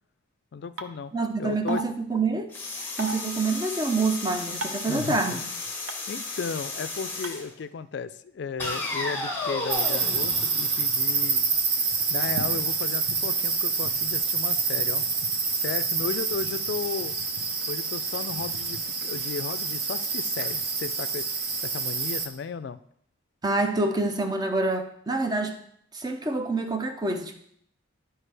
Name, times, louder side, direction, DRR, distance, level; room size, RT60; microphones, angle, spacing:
voice 1, 0.5-1.1 1.4-1.8 4.9-5.4 6.1-11.4 12.1-15.0 15.6-17.2 17.7-21.3 21.6-22.8, left 5 dB, 55° left, 13 dB, 0.3 m, -35 dB
sound 1, 0.8-0.9 1.7-1.8 3.0-3.1 4.6-4.9 5.9-6.0 7.2-7.3, right 1 dB, 80° right, 0.7 m, -32 dB
voice 2, 1.1-2.5 3.0-5.5 23.4-25.6 25.9-27.4, right 3 dB, 20° right, 6 dB, 0.6 m, -27 dB
sound 2, 2.5-7.5 8.6-11.5, left 2 dB, 10° left, 1.0 m, -34 dB
sound 3, 9.7-22.3, right 4 dB, 50° right, 0.8 m, -27 dB
11.5 x 4.5 x 3.3 m, 0.68 s
head